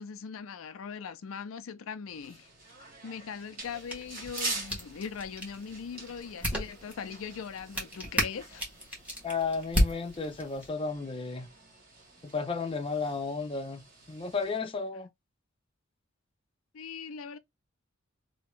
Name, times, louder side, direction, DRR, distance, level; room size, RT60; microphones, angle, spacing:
voice 1, 0.0-2.5 3.0-8.6 16.7-17.4, left 6 dB, 85° left, 0.4 m, -40 dB
sound 1, 2.1-14.6, right 3 dB, 45° right, 1.5 m, -45 dB
sound 2, 3.6-10.7, equal, 5° right, 1.3 m, -34 dB
voice 2, 9.2-11.5 12.2-13.8 14.1-15.1, left 4 dB, 25° left, 0.5 m, -33 dB
2.9 x 2.7 x 3.1 m
head